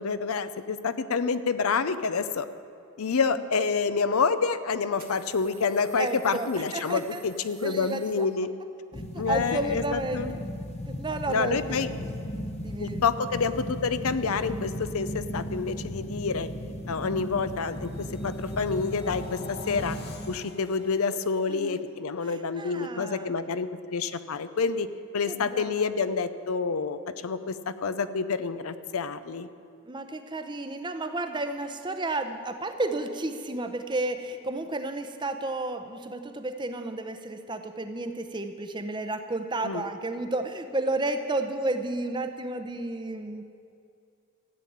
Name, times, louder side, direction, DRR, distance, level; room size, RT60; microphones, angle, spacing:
voice 1, 0.0-2.5 3.0-8.5 9.2-10.4 11.3-11.9 12.8-16.5 16.9-20.0 20.3-24.9 25.1-29.5 39.6-39.8, left 5 dB, 80° left, 12 dB, 0.6 m, -28 dB
sound 1, 3.8-3.9 4.9-8.7, right 9 dB, 45° right, 1.4 m, -52 dB
voice 2, 6.0-7.2 7.6-8.3 8.9-10.4 10.9-11.8 12.6-13.0 21.5-21.8 22.2-23.3 25.3-25.9 29.8-43.4, right 2 dB, 20° right, 8 dB, 0.7 m, -32 dB
sound 2, 8.9-20.4, equal, 30° left, 0.9 m, -36 dB
sound 3, 16.6-22.4 22.8-23.1, left 2 dB, 45° left, 1.2 m, -48 dB
14.0 x 8.4 x 8.6 m, 2.5 s
head